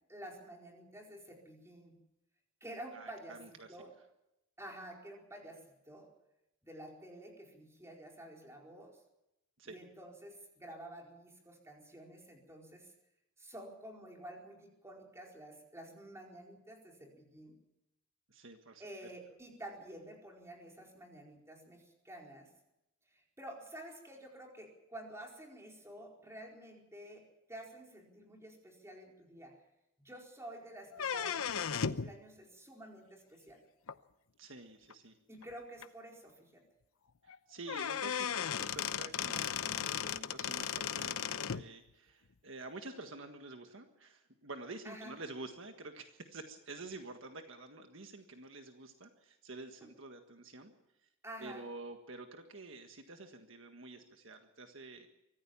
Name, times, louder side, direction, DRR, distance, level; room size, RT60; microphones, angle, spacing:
voice 1, 0.1-2.0 2.6-3.9 4.6-6.1 6.6-9.0 9.6-12.9 13.4-17.6 18.8-22.5 23.1-27.2 27.5-29.5 30.0-33.6 35.3-36.6 44.8-45.1 49.8-49.9 51.2-51.6, right 1 dB, 15° right, 0 dB, 4.5 m, -50 dB
voice 2, 2.9-3.7 9.6-9.7 18.3-18.8 34.4-35.2 37.2-50.7 51.0-51.1 51.4-55.1, right 2 dB, 65° right, 5 dB, 1.7 m, -49 dB
sound 1, 30.9-32.1 33.9-34.0 34.9-35.0 35.4-35.5 35.8-35.9 37.3-37.4 37.7-41.6, left 7 dB, 90° left, 0.8 m, -36 dB
24.0 x 15.0 x 7.3 m, 0.87 s
head